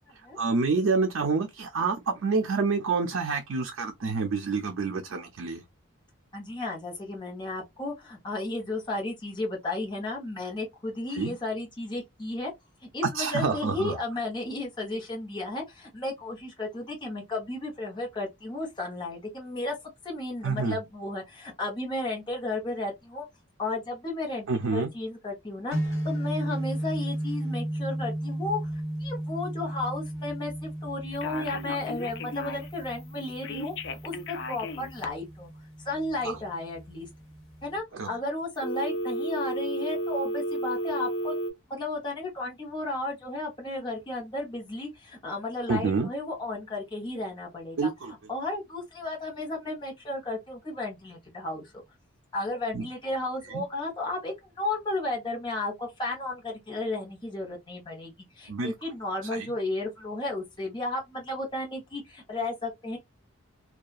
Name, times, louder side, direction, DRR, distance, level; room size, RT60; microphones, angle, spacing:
voice 1, 0.4-5.6 11.1-11.3 13.1-13.9 20.4-20.8 24.5-24.9 36.2-36.4 38.0-38.1 45.7-46.1 47.8-48.1 52.7-52.8 53.5-53.6 58.5-58.7 59.3-59.5, right 4 dB, 70° right, 0.5 m, -27 dB
voice 2, 6.3-12.5 12.9-19.7 20.0-23.2 23.6-28.7 29.0-33.7 34.0-35.5 35.8-37.1 37.6-41.3 41.7-47.9 48.3-51.8 52.3-63.0, left 2 dB, 20° left, 0.8 m, -33 dB
sound 1, 25.7-37.8, right 1 dB, 80° left, 1.0 m, -35 dB
Telephone, 31.1-32.8 33.4-35.1 38.6-41.5, equal, 55° left, 0.4 m, -32 dB
2.8 x 2.3 x 2.3 m
head